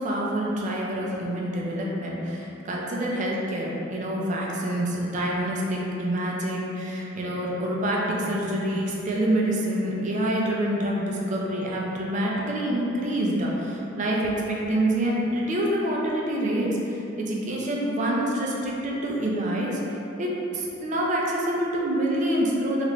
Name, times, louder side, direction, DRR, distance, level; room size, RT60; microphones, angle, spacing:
voice 1, 0.0-19.7 20.2-20.3 20.5-22.8, right 1 dB, 35° right, -3 dB, 0.4 m, -26 dB
3.2 x 2.4 x 2.9 m, 2.9 s
head